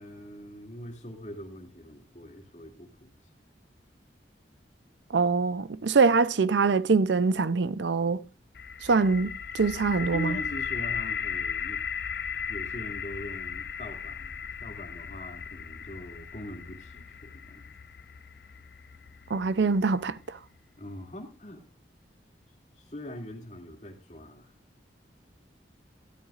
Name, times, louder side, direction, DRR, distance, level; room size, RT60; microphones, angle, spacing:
voice 1, 0.0-3.1 10.1-11.8 12.5-17.7 20.8-21.6 22.8-24.5, equal, 40° left, 2.6 m, -42 dB
voice 2, 5.1-8.2 8.8-10.4 19.3-20.4, right 4 dB, 80° right, 0.5 m, -24 dB
sound 1, 8.5-20.4, left 7 dB, 60° left, 0.5 m, -37 dB
13.0 x 13.0 x 2.5 m
head